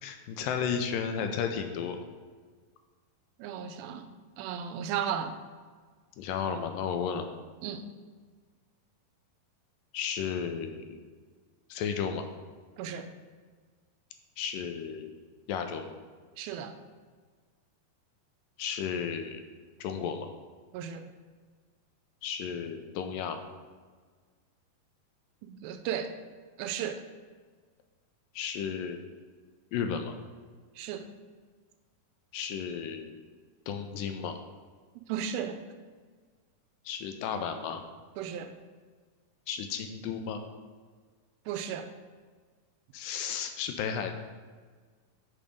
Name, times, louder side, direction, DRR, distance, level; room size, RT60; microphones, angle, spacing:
voice 1, 0.0-2.0 6.2-7.3 9.9-11.0 11.7-12.2 14.4-15.1 15.5-16.0 18.6-19.4 19.8-20.3 22.2-23.4 28.3-29.0 29.7-30.1 32.3-33.1 33.7-34.4 36.9-37.8 39.5-40.4 42.9-44.1, left 7 dB, 80° left, 6 dB, 2.1 m, -33 dB
voice 2, 3.4-4.1 4.4-5.4 7.6-7.9 12.8-13.1 16.4-16.8 20.7-21.1 25.4-26.2 26.6-27.0 30.8-31.1 35.0-35.6 38.2-38.5 41.5-41.9, right 8 dB, 85° right, 9 dB, 2.4 m, -35 dB
8.7 x 4.0 x 5.0 m, 1.5 s
omnidirectional pair, 4.2 m